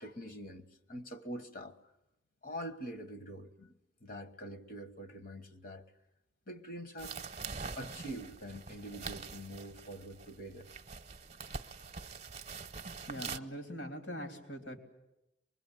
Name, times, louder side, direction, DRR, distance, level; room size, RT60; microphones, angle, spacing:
voice 1, 0.0-1.8 2.4-3.7 4.0-5.8 6.5-7.2 7.7-10.7, equal, 50° left, 1.2 m, -45 dB
sound 1, 7.0-13.4, right 5 dB, 35° right, 0.8 m, -44 dB
voice 2, 13.1-14.8, equal, 80° left, 3.3 m, -42 dB
24.0 x 21.5 x 9.0 m
head